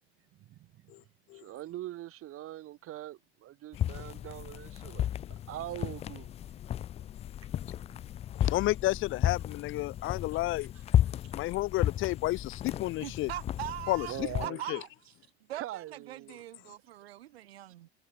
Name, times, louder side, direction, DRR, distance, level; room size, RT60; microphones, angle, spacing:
voice 1, 0.3-0.9 1.3-5.1 5.5-6.3 11.2-11.4 14.0-14.6 15.5-16.4, right 14 dB, 40° right, 3.4 m, -42 dB
sound 1, 3.7-14.5, left 11 dB, 20° left, 0.4 m, -33 dB
voice 2, 8.4-10.7 11.4-13.3 13.9-14.3 14.7-14.8, left 18 dB, 40° left, 0.8 m, -31 dB
voice 3, 13.0-14.1 14.4-15.1 15.5-17.9, right 14 dB, 65° right, 1.5 m, -41 dB
figure-of-eight pair, 70°, 33 cm